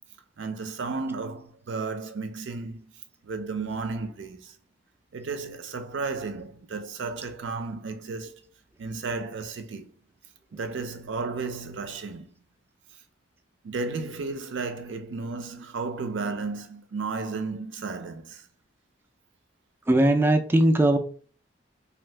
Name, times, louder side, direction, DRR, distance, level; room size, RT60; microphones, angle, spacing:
voice 1, 0.4-2.9 3.2-4.5 5.1-8.4 8.8-9.9 10.5-12.3 13.6-18.4, right 4 dB, 85° right, 0.5 m, -33 dB
voice 2, 19.9-21.0, right 1 dB, 10° right, 0.3 m, -19 dB
2.7 x 2.4 x 3.2 m
head